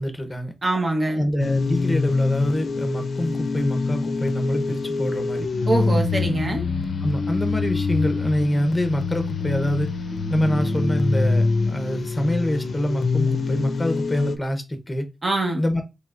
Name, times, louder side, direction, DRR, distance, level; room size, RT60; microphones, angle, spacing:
voice 1, 0.0-0.5 1.1-5.5 7.0-9.9 10.3-15.1 15.6-15.8, equal, 15° left, 0.8 m, -25 dB
voice 2, 0.6-1.2 5.7-6.6 15.2-15.6, right 2 dB, 40° right, 1.1 m, -23 dB
sound 1, 1.4-14.4, left 4 dB, 80° left, 0.5 m, -25 dB
4.6 x 3.3 x 2.5 m
wide cardioid pair, 130°, 0 cm